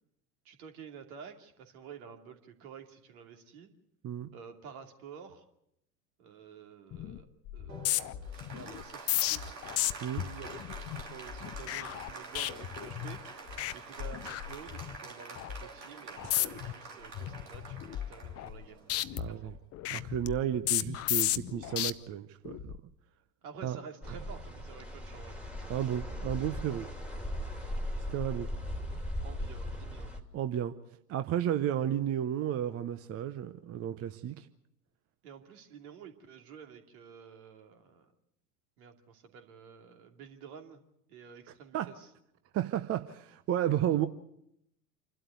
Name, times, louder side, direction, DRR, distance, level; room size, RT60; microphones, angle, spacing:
voice 1, 0.4-3.7 4.3-5.5 6.2-7.3 7.5-7.9 8.5-9.6 10.0-13.2 13.7-19.5 23.4-25.4 29.2-30.2 35.2-38.1 38.8-40.8 41.1-42.1, right 7 dB, 60° right, 5 dB, 2.8 m, -50 dB
sound 1, 6.9-7.2 7.5-13.2 13.5-13.7 14.0-15.0 15.4-15.6 16.2-16.7 17.1-18.6 18.9-21.9 22.4-22.8, left 14 dB, 30° left, 0.7 m, -34 dB
Applause, 7.7-19.6, right 4 dB, 80° right, 3.1 m, -47 dB
voice 2, 19.2-19.5 19.9-22.7 23.6-23.8 25.7-26.9 28.1-28.5 30.3-30.7 31.1-34.5 41.7-41.9 42.5-44.1, right 10 dB, 30° right, 10 dB, 0.8 m, -32 dB
sound 2, 24.0-30.2, left 1 dB, ahead, 2.6 m, -38 dB
27.5 x 12.5 x 8.2 m, 0.79 s
figure-of-eight pair, 85°, 49 cm